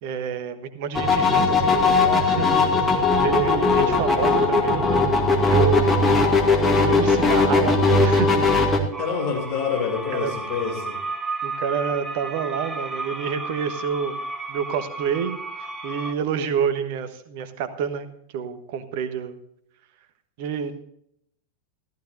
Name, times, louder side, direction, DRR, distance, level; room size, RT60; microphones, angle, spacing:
voice 1, 0.0-5.0 5.5-6.1 6.6-8.9 10.1-10.3 11.4-14.2 14.5-18.1 18.3-19.4 20.4-20.7, right 7 dB, 50° right, 10 dB, 1.3 m, -28 dB
sound 1, 0.9-8.8, left 3 dB, 15° left, 2.2 m, -19 dB
sound 2, 8.9-16.1, right 3 dB, 10° right, 1.2 m, -33 dB
voice 2, 9.0-11.0, left 6 dB, 45° left, 1 dB, 3.0 m, -27 dB
14.5 x 14.0 x 2.7 m, 0.72 s
figure-of-eight pair, 90°, 0 cm